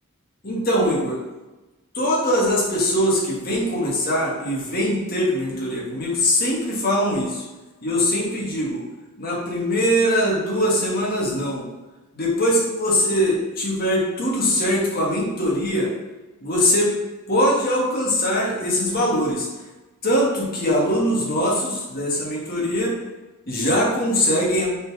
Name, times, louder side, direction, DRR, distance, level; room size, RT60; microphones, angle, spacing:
voice 1, 0.4-1.2 1.9-7.4 7.8-8.8 9.2-11.7 12.1-15.9 16.4-16.9 17.3-19.5 20.0-23.0 23.5-24.7, equal, 40° left, -3 dB, 1.8 m, -22 dB
6.5 x 4.2 x 4.8 m, 1.1 s
head